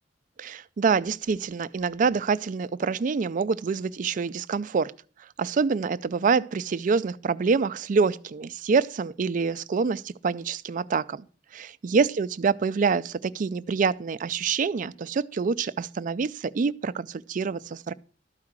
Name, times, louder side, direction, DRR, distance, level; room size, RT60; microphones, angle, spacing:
voice 1, 0.4-4.9 5.4-11.3 11.5-17.9, right 5 dB, 45° right, 0.4 m, -26 dB
12.5 x 4.8 x 7.3 m
head